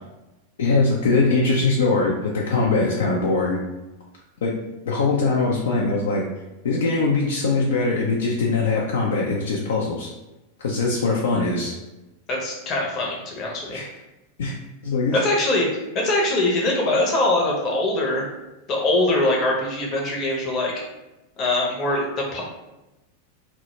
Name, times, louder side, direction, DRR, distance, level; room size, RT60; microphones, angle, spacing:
voice 1, 0.6-3.6 4.4-4.5 4.9-6.2 6.6-10.1 10.6-11.7 13.7-13.9 14.4-14.5 14.8-15.2, left 3 dB, 60° left, -2 dB, 0.3 m, -21 dB
voice 2, 12.3-13.8 15.1-15.7 15.9-18.2 18.7-20.7 21.4-22.4, left 2 dB, 35° left, -2 dB, 0.6 m, -22 dB
2.1 x 2.0 x 3.0 m, 1.0 s
figure-of-eight pair, 90°, 0 cm